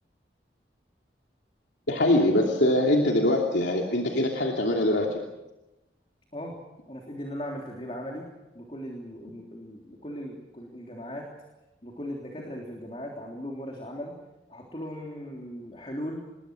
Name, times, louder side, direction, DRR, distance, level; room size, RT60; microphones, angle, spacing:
voice 1, 1.9-5.2, left 1 dB, 90° left, 0 dB, 2.8 m, -23 dB
voice 2, 6.9-8.3 8.5-11.3 11.8-14.1 14.5-16.2, equal, 30° left, 0 dB, 3.4 m, -38 dB
27.5 x 21.5 x 6.4 m, 1.0 s
head